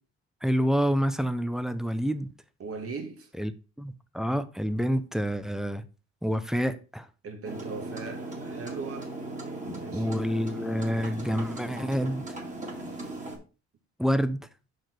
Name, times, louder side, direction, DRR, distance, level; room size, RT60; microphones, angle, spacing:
voice 1, 0.4-2.3 3.4-3.5 3.8-5.8 6.2-7.1 9.9-12.4 14.0-14.5, equal, ahead, 0.6 m, -28 dB
voice 2, 2.6-3.3 7.2-9.1 9.8-10.3, right 4 dB, 50° right, 1.6 m, -39 dB
sound 1, 7.4-13.4, right 2 dB, 25° right, 2.2 m, -38 dB
5.9 x 5.1 x 4.4 m
cardioid pair, 90°, 30 cm